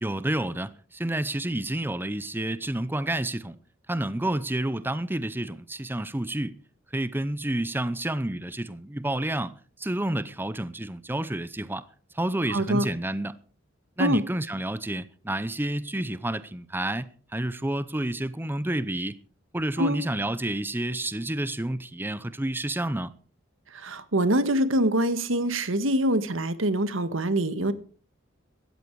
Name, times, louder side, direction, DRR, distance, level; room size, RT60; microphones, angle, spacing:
voice 1, 0.0-3.6 3.9-6.6 6.9-11.9 12.1-13.4 14.0-19.2 19.5-23.1, right 1 dB, 10° right, 0.7 m, -29 dB
voice 2, 12.5-12.8 14.0-14.2 19.8-20.0 23.7-27.7, right 1 dB, 90° right, 1.6 m, -24 dB
17.0 x 13.5 x 4.8 m
head